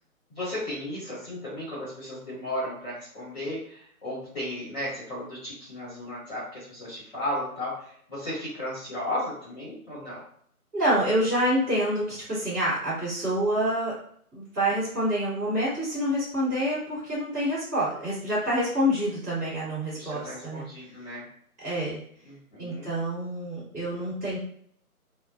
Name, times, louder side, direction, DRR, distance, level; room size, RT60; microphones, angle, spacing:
voice 1, 0.3-10.2 19.9-21.3 22.3-22.9, left 1 dB, 30° left, -9 dB, 1.2 m, -35 dB
voice 2, 10.7-13.9 14.3-20.6 21.6-22.0 22.6-24.4, equal, 10° right, -13 dB, 1.0 m, -27 dB
2.4 x 2.2 x 2.3 m, 0.62 s
hypercardioid pair, 160°, 45 cm